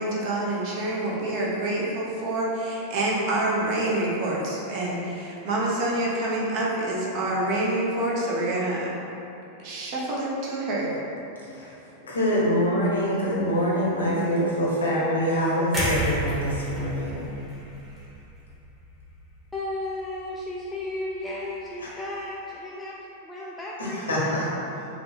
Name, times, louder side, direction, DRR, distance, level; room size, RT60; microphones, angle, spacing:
voice 1, 0.0-8.9 9.6-11.0, right 1 dB, 45° right, -4 dB, 0.8 m, -27 dB
voice 2, 12.0-17.2 21.8-21.9 23.8-24.5, equal, 75° left, -6 dB, 1.0 m, -25 dB
sound 1, 15.7-19.8 20.1-20.3, equal, 15° right, 1.2 m, -32 dB
voice 3, 19.5-23.0 23.2-24.4, left 1 dB, 10° left, -6 dB, 0.3 m, -34 dB
5.0 x 2.3 x 3.2 m, 2.9 s
figure-of-eight pair, 90°, 0 cm